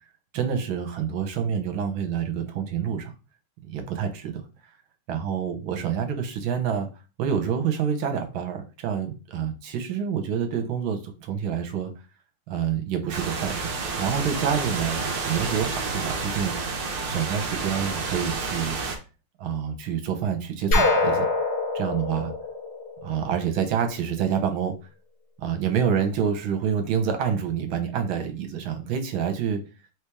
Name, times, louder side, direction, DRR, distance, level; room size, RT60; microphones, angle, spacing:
voice 1, 0.3-3.1 3.6-4.4 5.1-6.9 7.2-11.9 12.5-18.8 19.4-21.3 21.7-22.3 23.0-24.8 25.4-29.6, right 7 dB, 75° right, 6 dB, 1.6 m, -27 dB
sound 1, 13.1-19.0, right 4 dB, 55° right, 1.3 m, -30 dB
sound 2, 20.7-23.5, left 2 dB, 45° left, 0.9 m, -24 dB
4.5 x 3.2 x 3.5 m, 0.31 s
omnidirectional pair, 2.3 m